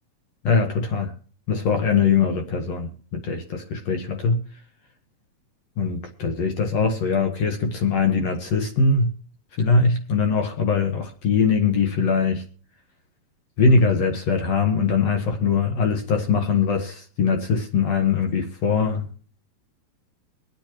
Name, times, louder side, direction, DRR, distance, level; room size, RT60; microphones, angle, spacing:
voice 1, 0.4-1.1 1.5-4.4 5.8-9.1 9.6-12.4 13.6-19.1, left 4 dB, 60° left, 2.0 m, -22 dB
23.5 x 8.5 x 3.0 m
omnidirectional pair, 4.3 m